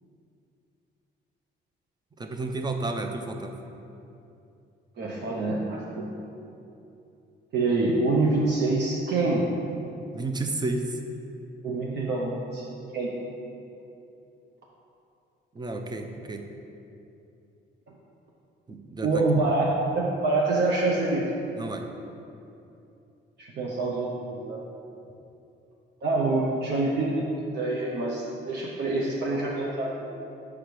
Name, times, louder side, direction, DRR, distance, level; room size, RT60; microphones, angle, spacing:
voice 1, 2.2-3.6 10.1-11.0 15.5-16.4 18.7-19.1 21.6-21.8, right 2 dB, 20° right, 4 dB, 0.6 m, -31 dB
voice 2, 5.0-6.1 7.5-9.5 11.6-13.1 19.0-19.7 19.9-21.2 23.4-24.6 26.0-27.3 27.5-30.1, right 2 dB, 60° right, -3 dB, 0.7 m, -26 dB
5.0 x 5.0 x 4.7 m, 2.7 s
cardioid pair, 90°, 20 cm